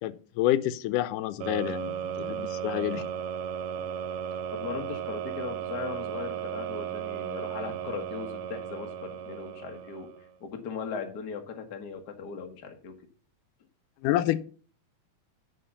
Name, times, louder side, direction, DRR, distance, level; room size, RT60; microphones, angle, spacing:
voice 1, 0.0-3.1 14.0-14.4, left 13 dB, 85° left, 14 dB, 2.2 m, -28 dB
sound 1, 1.4-10.3, right 9 dB, 90° right, 2.2 m, -35 dB
voice 2, 4.5-10.1 10.4-12.9, left 6 dB, 50° left, 4 dB, 1.3 m, -38 dB
10.0 x 4.2 x 6.8 m, 0.42 s
omnidirectional pair, 3.6 m